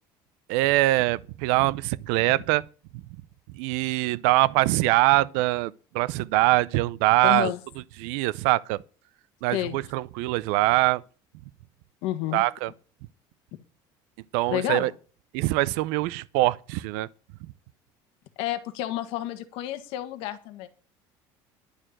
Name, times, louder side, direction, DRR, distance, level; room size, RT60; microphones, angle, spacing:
voice 1, 0.5-2.6 3.6-7.5 8.0-8.8 9.4-11.0 12.3-12.7 14.3-14.9 15.3-17.1, right 19 dB, 85° right, 0.5 m, -23 dB
voice 2, 7.2-7.6 9.5-9.8 12.0-12.4 14.5-14.9 18.4-20.7, left 13 dB, 65° left, 1.6 m, -30 dB
11.5 x 6.4 x 9.0 m
cardioid pair, 155°, 10 cm